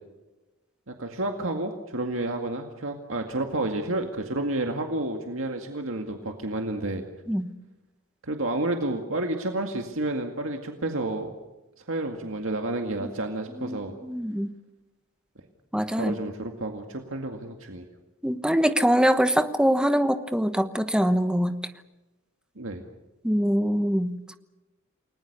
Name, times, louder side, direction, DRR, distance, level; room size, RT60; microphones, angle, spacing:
voice 1, 0.9-7.0 8.2-11.3 11.9-13.9 15.9-17.9 22.6-22.8, right 2 dB, 70° right, 3 dB, 2.1 m, -30 dB
voice 2, 13.6-14.5 15.7-16.1 18.2-21.6 23.2-24.4, equal, 5° right, 9 dB, 1.1 m, -24 dB
29.5 x 20.0 x 6.8 m, 1.1 s
head